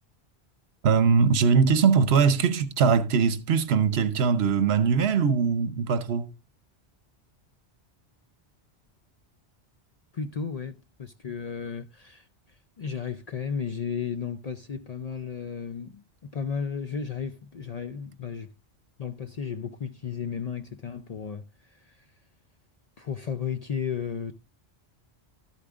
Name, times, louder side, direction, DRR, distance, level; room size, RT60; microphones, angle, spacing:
voice 1, 0.8-6.3, right 6 dB, 70° right, 1.0 m, -21 dB
voice 2, 10.1-18.5 19.0-22.1 23.0-24.3, left 6 dB, 50° left, 0.5 m, -34 dB
12.5 x 8.4 x 2.4 m
omnidirectional pair, 1.1 m